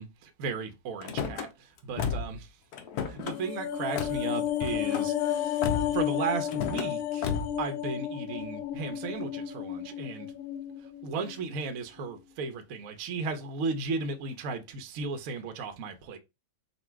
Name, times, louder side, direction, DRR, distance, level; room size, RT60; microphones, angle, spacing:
voice 1, 0.0-2.5 3.1-7.3 7.6-10.3 11.0-16.2, right 4 dB, 70° right, 0.8 m, -35 dB
Car / Slam, 1.0-1.5 2.0-2.4 2.7-3.4 4.0-4.2 4.6-5.1 5.6-6.0 6.5-6.9 7.2-7.6, left 6 dB, 65° left, 1.0 m, -32 dB
sound 1, 3.2-11.7 12.0-12.1, left 11 dB, 80° left, 1.5 m, -32 dB
4.1 x 2.3 x 4.4 m
omnidirectional pair, 2.2 m